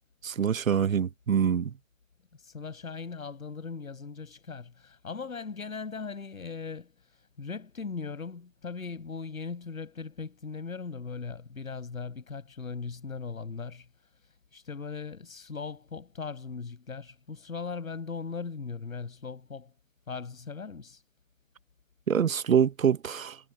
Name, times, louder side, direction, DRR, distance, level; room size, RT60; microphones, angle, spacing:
voice 1, 0.2-1.7 22.1-23.4, right 8 dB, 75° right, 1.2 m, -25 dB
voice 2, 2.4-6.9 7.4-13.9 14.5-19.7 20.1-21.0, left 5 dB, 85° left, 7.2 m, -39 dB
hypercardioid pair, 165°, 41 cm